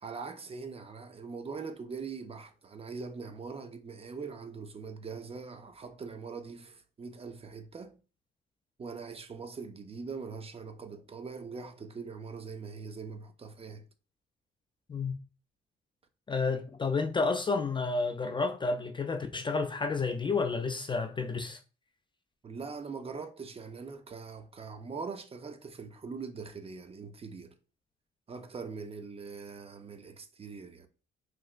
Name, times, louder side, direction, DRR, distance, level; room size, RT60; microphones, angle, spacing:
voice 1, 0.0-8.0 8.8-13.8 22.4-27.5 28.3-30.9, right 5 dB, 30° right, 0.5 m, -42 dB
voice 2, 16.3-21.6, left 4 dB, 25° left, 0.3 m, -30 dB
3.2 x 2.9 x 2.4 m
cardioid pair, 90°, 20 cm